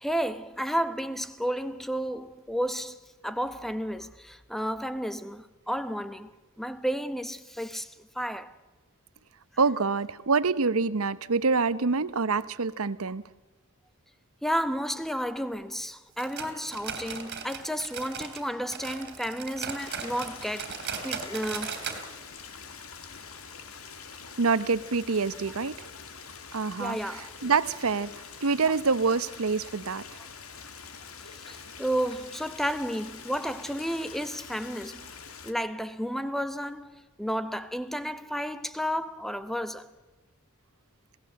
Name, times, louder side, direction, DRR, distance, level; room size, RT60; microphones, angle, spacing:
voice 1, 0.0-3.0 3.2-6.3 6.6-8.5 14.4-20.8 21.0-21.8 26.8-27.4 31.4-35.0 35.4-39.9, equal, ahead, 0.9 m, -32 dB
voice 2, 9.6-13.2 24.4-25.9 26.5-28.1 28.4-30.0, right 4 dB, 85° right, 0.9 m, -26 dB
sound 1, 16.2-18.4 18.7-22.0 22.3-22.4 22.8-22.9 23.5-23.6, right 6 dB, 55° right, 3.6 m, -37 dB
Stream, 19.8-35.5, left 6 dB, 90° left, 2.0 m, -45 dB
27.5 x 17.0 x 7.7 m
head